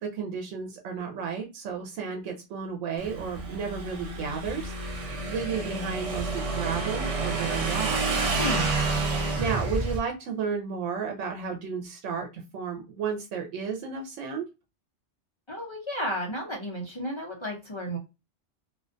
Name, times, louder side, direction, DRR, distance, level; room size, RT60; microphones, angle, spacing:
voice 1, 0.0-8.0 9.4-12.3 12.5-14.4, right 6 dB, 90° right, 2 dB, 0.9 m, -33 dB
Motorcycle / Engine, 3.0-10.0, right 3 dB, 55° right, 0.4 m, -29 dB
voice 2, 15.5-18.0, equal, 40° left, -2 dB, 0.4 m, -32 dB
2.4 x 2.2 x 2.4 m, 0.27 s
omnidirectional pair, 1.2 m